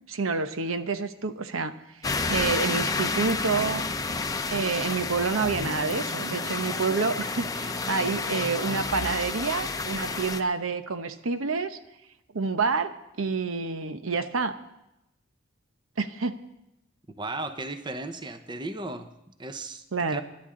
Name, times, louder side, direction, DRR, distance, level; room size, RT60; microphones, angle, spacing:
voice 1, 0.1-1.7 2.3-3.9 4.5-11.8 12.3-14.6 16.0-16.4 19.9-20.2, right 4 dB, 90° right, 10 dB, 0.9 m, -28 dB
sound 1, 2.0-10.4, left 3 dB, 20° left, 0.6 m, -30 dB
voice 2, 17.2-19.1 19.4-20.2, right 2 dB, 20° right, 9 dB, 0.8 m, -35 dB
24.0 x 11.5 x 3.8 m, 0.87 s
head